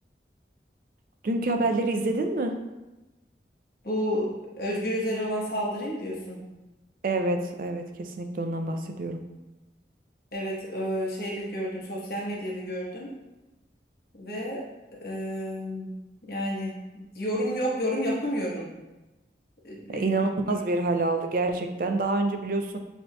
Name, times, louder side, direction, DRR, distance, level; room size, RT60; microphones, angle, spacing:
voice 1, 1.2-2.6 7.0-9.2 19.9-22.8, right 2 dB, 50° right, 6 dB, 0.4 m, -27 dB
voice 2, 3.8-6.4 10.3-13.1 14.1-14.6 15.0-15.9 16.2-18.7 19.6-20.1 20.5-20.6, equal, 55° left, -4 dB, 1.0 m, -31 dB
6.6 x 2.8 x 2.2 m, 1.0 s
head